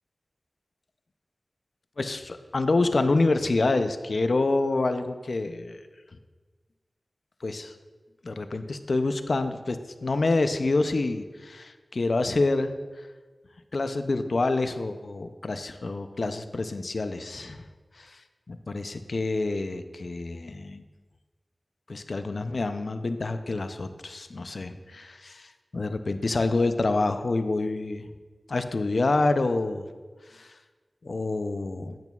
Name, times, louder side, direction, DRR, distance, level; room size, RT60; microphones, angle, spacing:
voice 1, 2.0-5.8 7.4-7.7 8.2-12.7 13.7-17.7 17.9-18.2 18.5-20.8 21.9-28.1 28.5-29.9 30.3-30.6 31.0-32.0, left 3 dB, 70° left, 9 dB, 0.4 m, -27 dB
8.8 x 8.1 x 2.3 m, 1.4 s
wide cardioid pair, 80°, 0 cm